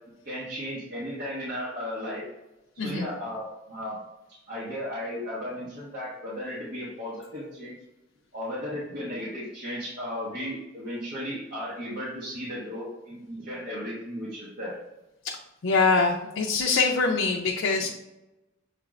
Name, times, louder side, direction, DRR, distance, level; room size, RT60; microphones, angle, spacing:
voice 1, 0.2-2.2 2.7-4.0 4.3-7.7 8.3-14.8 17.8-17.9, equal, 55° right, -8 dB, 1.2 m, -35 dB
voice 2, 15.6-17.9, left 4 dB, 70° left, 0 dB, 0.4 m, -24 dB
6.5 x 2.5 x 3.1 m, 0.98 s
head